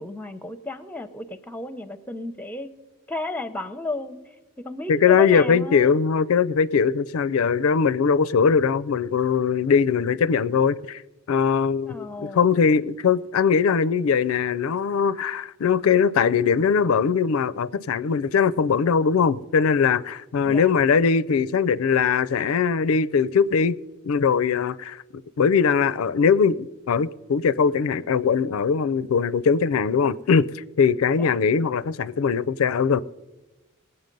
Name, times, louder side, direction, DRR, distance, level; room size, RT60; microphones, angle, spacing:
voice 1, 0.0-2.7 3.1-6.0 11.9-12.5 20.4-20.7 31.2-31.4, left 2 dB, 10° left, 0.6 m, -34 dB
voice 2, 4.9-11.0 11.3-23.8 24.0-25.0 25.4-33.0, left 6 dB, 80° left, 0.4 m, -21 dB
19.5 x 8.0 x 5.3 m
head